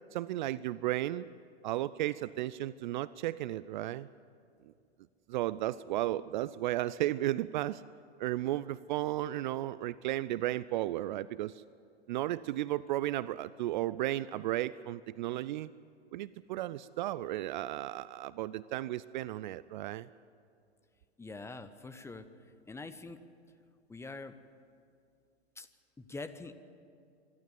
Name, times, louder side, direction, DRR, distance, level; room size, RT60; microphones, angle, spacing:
voice 1, 0.1-1.3 1.6-4.1 5.3-7.8 8.2-11.6 12.1-15.7 16.1-20.1, right 14 dB, 45° right, 18 dB, 0.5 m, -34 dB
voice 2, 21.2-22.3 22.7-23.2 23.9-24.4 25.6-25.7 26.0-26.5, left 3 dB, 10° left, 10 dB, 0.9 m, -44 dB
25.5 x 12.5 x 9.5 m, 2.4 s
figure-of-eight pair, 100°, 32 cm